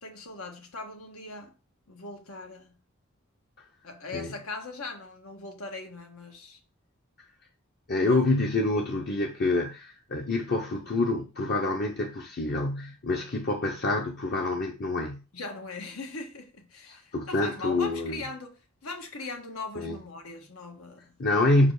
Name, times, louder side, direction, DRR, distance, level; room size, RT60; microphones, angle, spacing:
voice 1, 0.0-1.5 1.9-2.7 3.8-6.6 8.0-8.2 15.3-21.2, left 3 dB, 85° left, 1.6 m, -40 dB
voice 2, 7.9-15.2 16.9-18.2 19.8-20.0 21.2-21.7, left 2 dB, 50° left, 0.8 m, -27 dB
5.5 x 4.9 x 4.8 m
head